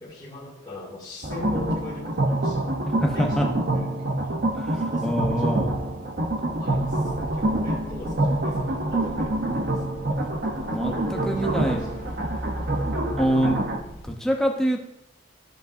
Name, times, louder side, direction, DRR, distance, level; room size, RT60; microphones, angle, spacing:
voice 1, 0.0-2.7 3.1-4.4 4.7-5.9 6.6-9.8 10.8-12.0, left 2 dB, 20° left, -6 dB, 2.2 m, -41 dB
sound 1, 1.2-13.8, right 1 dB, 45° right, 0.8 m, -26 dB
voice 2, 2.9-3.4 4.6-5.7 10.7-10.9 11.3-11.9 13.2-13.6 14.0-14.8, equal, 5° left, 1 dB, 0.7 m, -25 dB
sound 2, 6.8-14.0, equal, 65° left, 2.0 m, -38 dB
13.5 x 5.1 x 2.6 m, 0.81 s
head